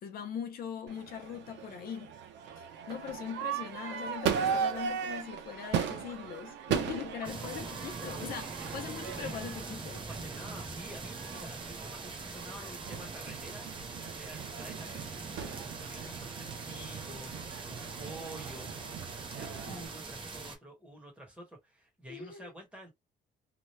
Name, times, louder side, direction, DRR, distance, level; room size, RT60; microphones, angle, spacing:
voice 1, 0.0-2.1 2.6-10.1 22.1-22.5, left 8 dB, 55° left, 0.7 m, -41 dB
Crowd / Fireworks, 0.9-19.9, right 7 dB, 80° right, 0.7 m, -38 dB
sound 1, 7.2-20.6, right 4 dB, 30° right, 0.7 m, -42 dB
voice 2, 10.1-13.7 14.2-18.7 19.3-22.9, right 1 dB, 5° right, 1.1 m, -49 dB
2.9 x 2.2 x 3.1 m
cardioid pair, 175°, 18 cm